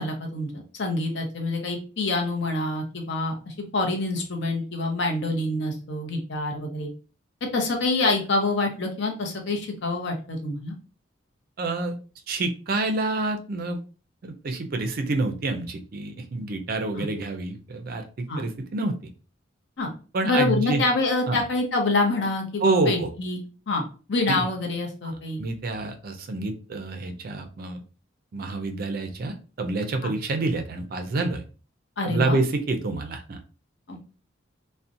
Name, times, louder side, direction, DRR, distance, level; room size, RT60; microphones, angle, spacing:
voice 1, 0.0-6.9 7.5-10.7 17.0-17.1 18.3-18.4 19.8-19.9 20.2-23.8 24.1-25.4 30.0-30.1 32.0-32.4 33.9-34.0, left 2 dB, 60° left, 2 dB, 0.6 m, -26 dB
voice 2, 11.6-12.0 12.3-13.8 14.2-19.0 20.1-20.8 21.3-21.4 22.6-23.1 24.3-24.5 25.4-27.8 28.3-31.4 32.0-33.4, right 3 dB, 50° right, 6 dB, 0.4 m, -27 dB
2.6 x 2.1 x 2.5 m, 0.35 s
head